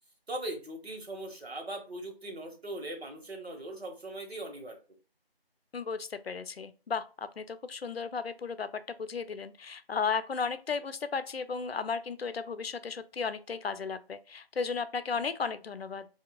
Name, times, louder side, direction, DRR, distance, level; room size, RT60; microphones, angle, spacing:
voice 1, 0.3-4.7, right 1 dB, 85° right, 1.3 m, -40 dB
voice 2, 5.7-16.1, left 5 dB, 75° left, 0.5 m, -35 dB
3.4 x 2.7 x 2.4 m
figure-of-eight pair, 165°, 30 cm